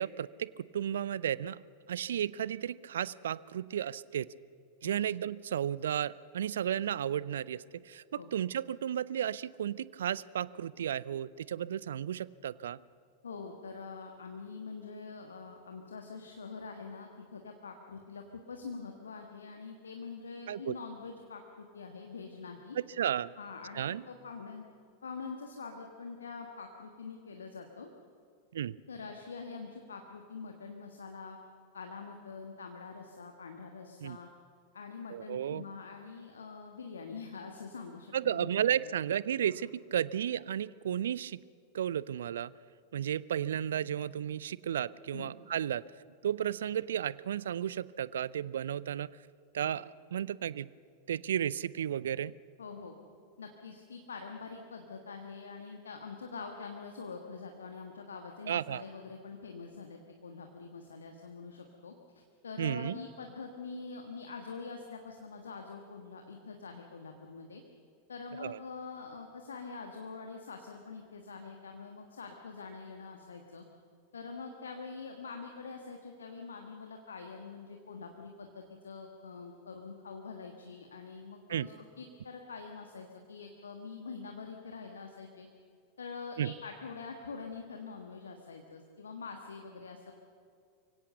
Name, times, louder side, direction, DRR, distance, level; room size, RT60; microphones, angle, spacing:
voice 1, 0.0-1.6 1.9-4.3 4.8-12.8 20.5-20.7 23.0-23.3 23.7-24.0 28.5-28.8 34.0-34.2 35.1-35.6 38.1-41.4 41.7-42.5 42.9-45.8 46.2-49.1 49.5-50.7 51.1-52.3 58.5-58.8 62.6-63.0 68.4-68.6 81.5-81.7 86.4-86.5, right 10 dB, 65° right, 21 dB, 0.4 m, -33 dB
voice 2, 13.2-22.8 23.4-24.6 25.0-27.9 28.9-31.4 31.7-34.3 34.7-38.5 38.8-38.9 39.4-39.6 45.1-45.3 49.6-49.7 52.6-52.9 53.4-67.6 68.1-73.6 74.1-85.5 86.0-90.1, left 4 dB, 70° left, 4 dB, 1.5 m, -45 dB
24.0 x 17.0 x 6.8 m, 2.4 s
figure-of-eight pair, 90°, 0 cm